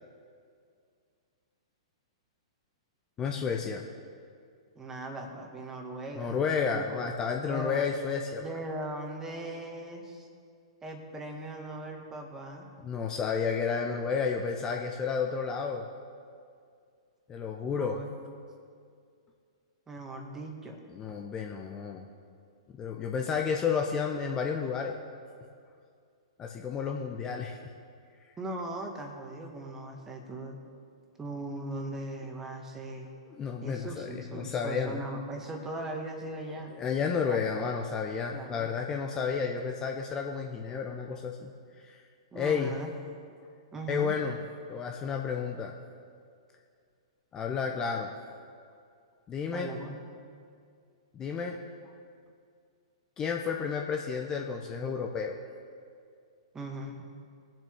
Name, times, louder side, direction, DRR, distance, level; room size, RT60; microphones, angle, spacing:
voice 1, 3.2-3.8 6.1-8.4 12.8-15.9 17.3-18.0 20.9-22.0 22.8-25.0 26.4-27.6 33.4-35.0 36.8-41.5 42.3-42.7 43.9-44.4 44.7-45.7 47.3-48.1 49.3-49.7 51.1-51.6 53.2-55.4, left 6 dB, 20° left, 2 dB, 0.8 m, -31 dB
voice 2, 4.7-6.4 6.6-6.9 7.5-7.8 8.4-10.3 10.8-12.7 17.8-18.1 19.9-20.8 28.4-30.6 31.2-33.1 33.6-36.7 37.3-37.4 38.3-38.7 42.3-42.9 43.7-44.1 49.5-50.0 56.5-57.1, right 1 dB, 15° right, 3 dB, 1.6 m, -39 dB
22.0 x 7.5 x 3.7 m, 2.3 s
figure-of-eight pair, 105°, 3 cm